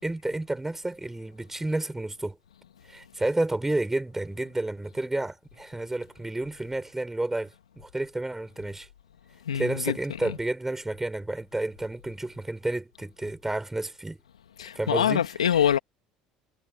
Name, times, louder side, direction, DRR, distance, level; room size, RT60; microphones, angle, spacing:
voice 1, 0.0-2.4 2.9-8.9 9.5-14.2 14.7-15.3 15.5-15.7, right 2 dB, 10° right, 4.9 m, -31 dB
voice 2, 9.5-10.0 14.6-15.8, left 9 dB, 90° left, 2.4 m, -24 dB
hypercardioid pair, 65°, 3 cm